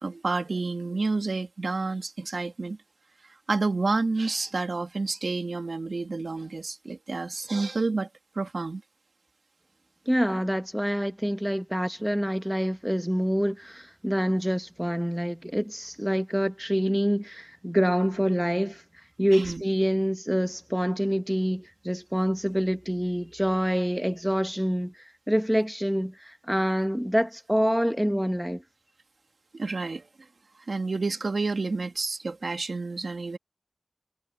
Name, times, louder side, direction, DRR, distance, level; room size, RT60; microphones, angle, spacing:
voice 1, 0.0-2.8 3.5-8.1 8.4-8.8 19.3-19.6 29.5-30.0 30.7-33.4, right 3 dB, 85° right, 2.1 m, -29 dB
voice 2, 10.1-18.8 19.2-28.6, equal, 5° right, 1.2 m, -26 dB
wide cardioid pair, 55°, 0 cm